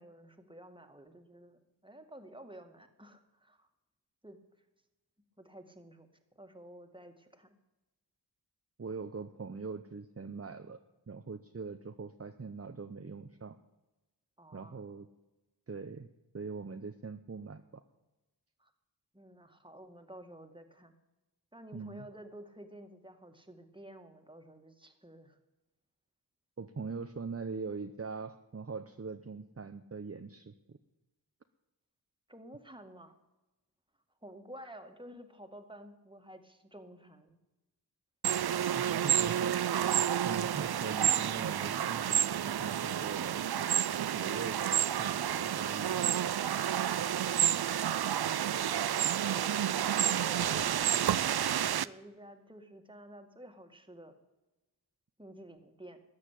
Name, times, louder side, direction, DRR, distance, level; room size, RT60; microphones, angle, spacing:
voice 1, 0.0-3.7 4.2-4.4 5.4-7.6 14.4-14.8 18.6-18.7 19.1-20.9 21.5-25.4 32.3-33.2 34.2-37.4 48.2-48.5 51.8-54.2 55.2-56.0, right 1 dB, 10° right, 6 dB, 2.0 m, -51 dB
voice 2, 8.8-10.8 11.1-13.5 14.5-15.1 15.7-16.1 16.3-17.8 21.7-22.1 26.6-30.8 38.7-43.4 44.1-46.5 50.4-50.7, right 4 dB, 35° right, 8 dB, 0.8 m, -42 dB
sound 1, 38.2-51.9, right 10 dB, 65° right, 0.5 m, -30 dB
14.0 x 9.7 x 8.4 m, 1.1 s
wide cardioid pair, 45°, 41 cm